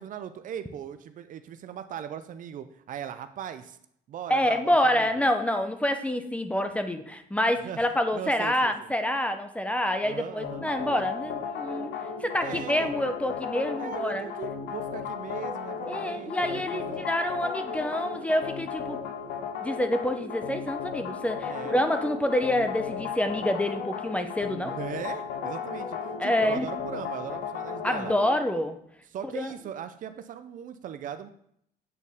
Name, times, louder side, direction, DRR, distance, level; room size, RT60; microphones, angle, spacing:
voice 1, 0.0-3.8 4.1-5.3 7.6-7.9 8.1-8.9 10.0-10.7 12.4-12.9 13.8-17.1 21.4-21.8 24.6-28.1 29.1-31.3, right 9 dB, 50° right, 11 dB, 0.5 m, -39 dB
voice 2, 4.3-11.9 12.2-14.3 15.9-19.0 19.6-24.7 26.2-26.7 27.8-28.8 29.3-29.5, left 1 dB, 5° left, 7 dB, 0.6 m, -27 dB
sound 1, 10.4-28.3, left 6 dB, 80° left, 0.8 m, -35 dB
8.3 x 4.1 x 3.5 m, 0.69 s
cardioid pair, 110°, 17 cm